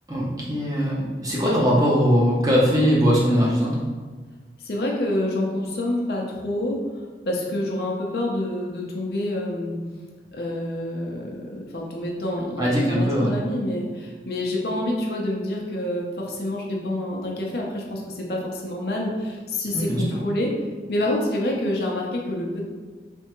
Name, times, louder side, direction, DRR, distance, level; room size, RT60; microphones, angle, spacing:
voice 1, 0.1-3.8 12.6-13.4 19.7-20.2, equal, 20° right, -5 dB, 0.7 m, -21 dB
voice 2, 4.6-6.8 7.2-9.8 10.3-20.5 20.9-22.6, left 1 dB, 65° left, -2 dB, 0.7 m, -27 dB
3.4 x 3.4 x 3.0 m, 1.4 s
head